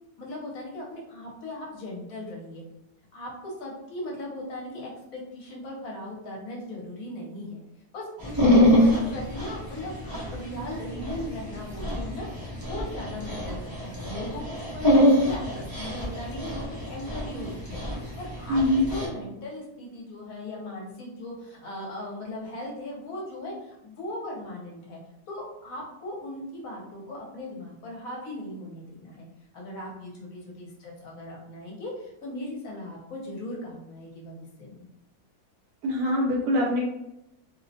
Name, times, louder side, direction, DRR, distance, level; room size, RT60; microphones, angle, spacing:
voice 1, 0.2-2.6 3.1-7.6 7.9-17.8 18.2-25.0 25.3-29.3 29.5-34.8, left 1 dB, 70° left, -2 dB, 1.1 m, -38 dB
Dog, 8.2-19.1, left 1 dB, 30° right, 0.4 m, -25 dB
voice 2, 18.5-18.9 35.8-36.8, left 1 dB, 75° right, -3 dB, 1.2 m, -23 dB
2.7 x 2.0 x 2.6 m, 0.87 s
omnidirectional pair, 1.7 m